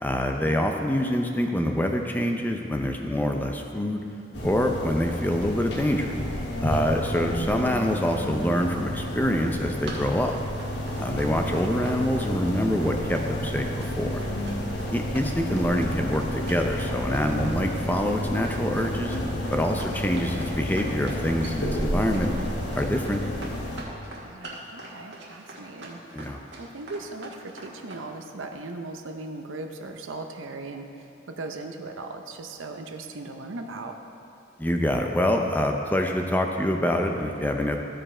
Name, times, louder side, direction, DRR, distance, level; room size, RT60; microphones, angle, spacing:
voice 1, 0.0-4.0 4.4-6.2 6.6-10.3 11.0-14.2 14.9-19.2 19.5-22.3 22.8-23.2 26.1-26.4 34.6-37.8, equal, 10° left, 3 dB, 0.5 m, -26 dB
sound 1, 4.3-23.8, equal, 60° left, 1.2 m, -31 dB
Run, 9.5-28.0, right 2 dB, 65° right, 1.5 m, -43 dB
voice 2, 11.0-11.3 14.8-14.9 19.8-20.1 24.2-26.0 26.6-34.0, right 2 dB, 90° right, 4 dB, 0.7 m, -38 dB
14.5 x 5.2 x 4.3 m, 2.7 s
head